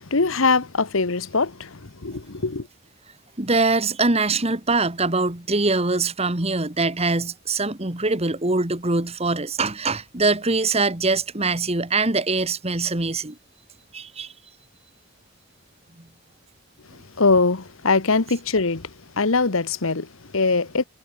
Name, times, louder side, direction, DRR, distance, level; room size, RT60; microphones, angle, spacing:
voice 1, 0.0-2.7 17.2-18.9 19.2-20.8, left 3 dB, 65° left, 1.2 m, -22 dB
voice 2, 3.4-13.4 13.9-14.3 16.0-16.1, right 3 dB, 30° right, 1.8 m, -23 dB
head